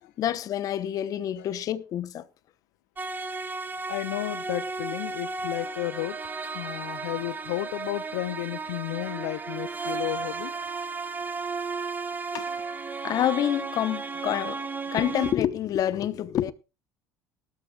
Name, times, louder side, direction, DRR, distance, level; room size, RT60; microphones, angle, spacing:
voice 1, 0.2-2.3 12.3-12.5 13.0-16.5, left 11 dB, 55° left, 1.0 m, -27 dB
sound 1, 3.0-15.3, right 4 dB, 25° right, 2.2 m, -34 dB
voice 2, 3.9-6.2 6.5-10.5, left 17 dB, 80° left, 0.5 m, -32 dB
19.0 x 13.0 x 2.3 m
hypercardioid pair, 70°, 7 cm